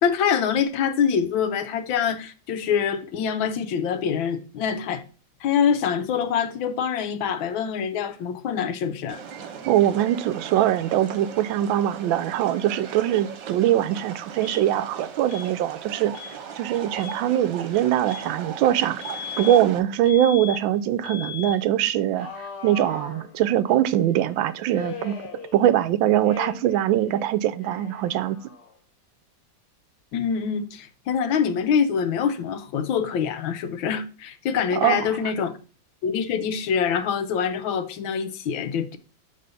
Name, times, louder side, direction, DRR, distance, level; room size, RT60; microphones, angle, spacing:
voice 1, 0.0-5.0 5.4-9.2 30.1-35.6 36.0-39.0, left 7 dB, 85° left, 1.5 m, -25 dB
sound 1, 9.1-19.8, right 7 dB, 70° right, 1.5 m, -38 dB
voice 2, 9.7-16.1 16.6-19.0 19.4-22.3 22.6-25.1 25.5-28.4 34.8-35.0, right 12 dB, 85° right, 1.4 m, -22 dB
Alarm, 14.4-14.6 15.3-15.5 16.1-16.3 16.9-17.2 18.1-18.3 19.0-19.6 20.0-20.6 21.0-21.6 22.2-23.7 24.7-25.9 26.2-26.8 27.1-28.8, left 7 dB, 60° left, 1.7 m, -38 dB
6.8 x 3.8 x 5.1 m
omnidirectional pair, 2.1 m